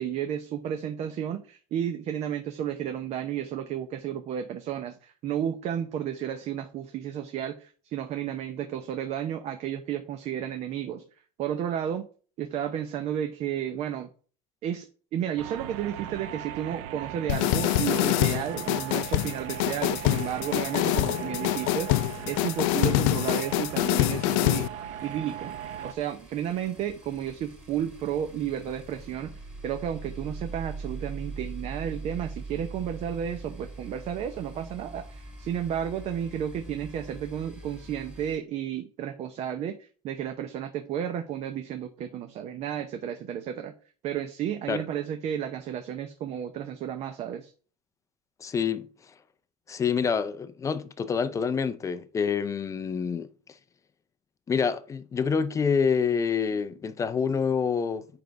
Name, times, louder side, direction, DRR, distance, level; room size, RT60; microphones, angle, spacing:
voice 1, 0.0-11.0 11.4-12.1 12.4-14.1 14.6-24.7 25.0-25.5 25.8-43.7 44.0-47.5, right 9 dB, 40° right, 0.7 m, -32 dB
sound 1, 15.4-25.9, right 10 dB, 85° right, 0.7 m, -39 dB
sound 2, 17.3-24.7, left 18 dB, 75° left, 0.4 m, -25 dB
sound 3, 21.3-21.5 21.8-22.0 22.3-22.4 22.6-38.4, right 3 dB, 5° right, 2.3 m, -43 dB
voice 2, 48.4-48.9 49.7-53.3 54.5-58.1, left 6 dB, 20° left, 0.5 m, -27 dB
7.4 x 5.2 x 4.6 m
cardioid pair, 145°, 17 cm